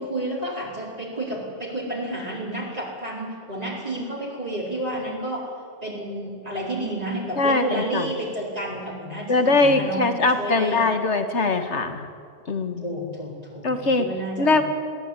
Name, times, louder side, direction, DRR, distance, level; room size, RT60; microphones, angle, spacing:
voice 1, 0.0-5.5 5.8-10.9 12.8-14.6, right 1 dB, 35° right, -5 dB, 4.6 m, -31 dB
voice 2, 7.4-8.1 9.3-12.1 12.5-12.9 13.6-14.1 14.4-14.6, left 3 dB, 85° left, 7 dB, 2.1 m, -21 dB
21.5 x 16.0 x 9.9 m, 2.1 s
omnidirectional pair, 1.1 m